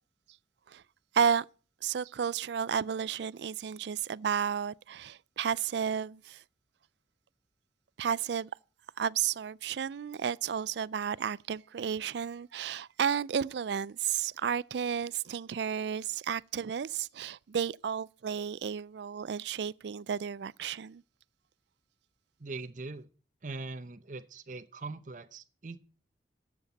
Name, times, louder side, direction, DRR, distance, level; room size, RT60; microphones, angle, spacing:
voice 1, 1.1-1.5 1.8-6.4 8.0-8.5 9.0-21.0, right 7 dB, 70° right, 0.4 m, -32 dB
voice 2, 22.4-23.1 23.4-25.8, right 3 dB, 45° right, 0.8 m, -41 dB
13.0 x 7.8 x 4.1 m
head